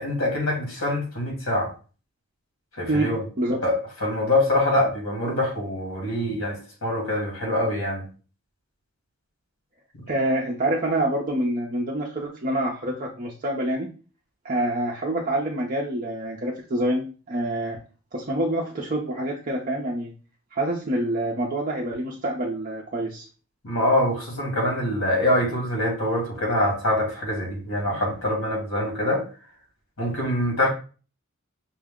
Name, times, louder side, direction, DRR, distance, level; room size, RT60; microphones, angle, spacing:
voice 1, 0.0-1.7 2.8-3.2 3.6-8.1 23.6-29.2 30.0-30.7, left 1 dB, 85° left, 1.9 m, -24 dB
voice 2, 2.9-3.6 10.1-13.9 14.4-17.8 18.1-20.1 20.5-23.3, right 1 dB, 40° right, 0.5 m, -26 dB
5.5 x 2.0 x 3.5 m
head